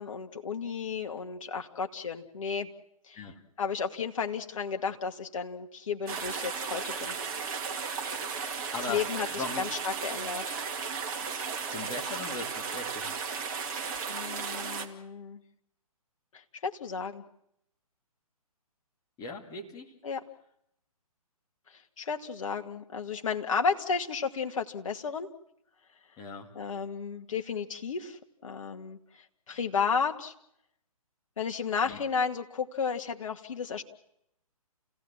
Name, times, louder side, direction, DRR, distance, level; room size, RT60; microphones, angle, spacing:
voice 1, 0.0-2.7 3.1-3.3 3.6-7.2 8.5-10.6 14.1-15.4 16.3-17.2 20.0-20.2 21.7-25.3 26.5-30.3 31.4-33.8, left 6 dB, 55° left, 4 dB, 2.3 m, -33 dB
sound 1, 6.1-14.8, right 5 dB, 35° right, 2.4 m, -35 dB
voice 2, 8.3-9.0 9.4-9.7 11.7-13.1 19.2-19.9 26.2-26.5 31.9-32.0, left 4 dB, 20° left, 0 dB, 2.8 m, -39 dB
29.5 x 17.0 x 7.5 m, 0.76 s
figure-of-eight pair, 135°, 19 cm